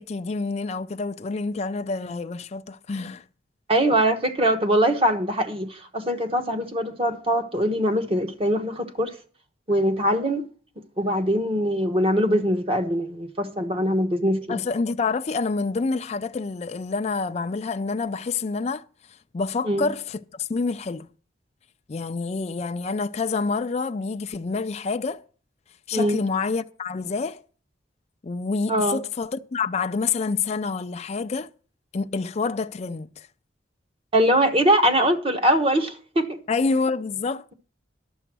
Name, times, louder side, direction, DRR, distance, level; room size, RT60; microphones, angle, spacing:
voice 1, 0.0-3.2 14.5-18.8 19.3-21.1 21.9-25.2 25.9-27.4 28.2-31.5 31.9-33.3 36.5-37.5, left 4 dB, 35° left, 0.4 m, -27 dB
voice 2, 3.7-9.2 9.7-10.4 11.0-14.6 19.6-19.9 25.9-26.2 28.7-29.0 34.1-36.4, equal, 30° right, 1.1 m, -22 dB
11.0 x 7.0 x 6.0 m
head